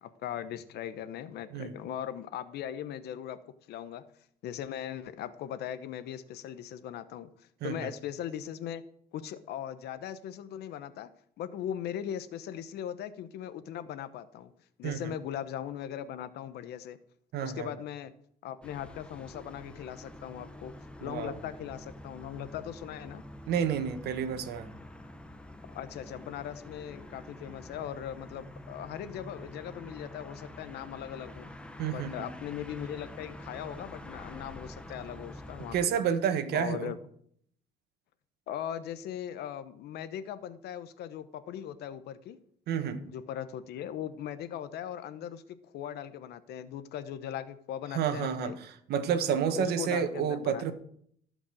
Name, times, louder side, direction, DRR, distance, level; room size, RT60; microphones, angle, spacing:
voice 1, 0.0-4.0 4.4-7.3 7.6-8.8 9.1-11.1 11.4-14.5 14.8-17.0 17.4-18.1 18.4-20.7 21.0-23.2 25.7-31.5 31.9-35.9 36.5-37.0 38.5-42.4 43.0-48.6 49.5-50.7, left 10 dB, 75° left, 13 dB, 1.0 m, -39 dB
voice 2, 17.3-17.7 21.0-21.4 23.5-24.7 31.8-32.3 35.7-36.9 42.7-43.0 47.9-50.7, right 8 dB, 70° right, 10 dB, 1.4 m, -30 dB
sound 1, 18.6-35.9, left 1 dB, 5° left, 1.1 m, -47 dB
15.5 x 5.3 x 7.7 m, 0.66 s
cardioid pair, 110°, 17 cm